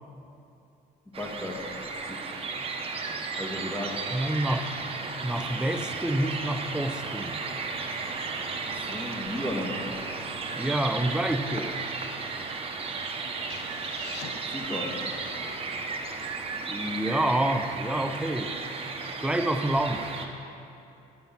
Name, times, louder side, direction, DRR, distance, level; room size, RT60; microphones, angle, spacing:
voice 1, 1.1-1.7 2.1-2.2 3.4-4.1 4.3-4.5 8.6-9.8 14.5-15.1 16.2-16.4, left 1 dB, 10° left, -1 dB, 1.6 m, -35 dB
sound 1, 1.1-20.3, right 4 dB, 35° right, 1.0 m, -34 dB
voice 2, 4.1-4.7 5.2-7.4 10.5-11.8 16.5-18.5 19.2-20.1, right 1 dB, 5° right, 7 dB, 0.6 m, -28 dB
sound 2, 13.5-17.2, left 7 dB, 80° left, 0.7 m, -46 dB
10.5 x 7.4 x 5.7 m, 2.7 s
cardioid pair, 110°, 17 cm